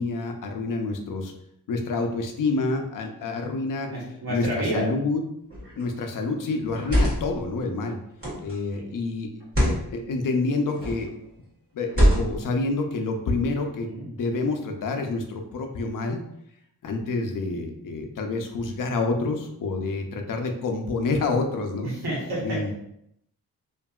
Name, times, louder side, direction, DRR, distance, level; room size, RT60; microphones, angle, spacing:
voice 1, 0.0-1.3 1.7-3.9 4.3-5.2 5.8-8.0 8.4-9.3 9.6-11.1 11.7-16.2 16.8-21.9 22.4-22.7, left 3 dB, 60° left, 4 dB, 0.5 m, -28 dB
voice 2, 3.9-4.8 8.7-8.8 13.8-14.0 21.8-22.4, right 1 dB, 85° right, -6 dB, 1.3 m, -29 dB
sound 1, 5.5-5.8 6.6-7.4 8.2-8.5 9.4-9.8 10.7-11.1 11.9-12.5, equal, 35° right, 1.4 m, -23 dB
2.8 x 2.5 x 2.3 m, 0.77 s
wide cardioid pair, 90°, 37 cm